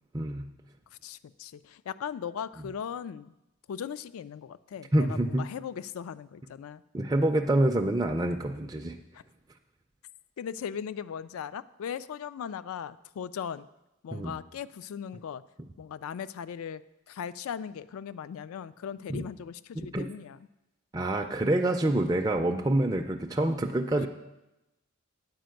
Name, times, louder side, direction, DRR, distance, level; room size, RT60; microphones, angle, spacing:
voice 1, 0.1-0.5 4.9-5.5 6.9-9.0 14.1-14.4 19.1-19.2 19.9-20.1 20.9-24.1, right 1 dB, 15° right, 3 dB, 0.4 m, -26 dB
voice 2, 1.0-3.3 3.7-6.8 9.1-9.2 10.4-13.7 14.0-15.4 15.8-16.8 17.1-20.4, left 8 dB, 75° left, 17 dB, 0.3 m, -38 dB
9.3 x 5.1 x 7.7 m, 0.96 s
head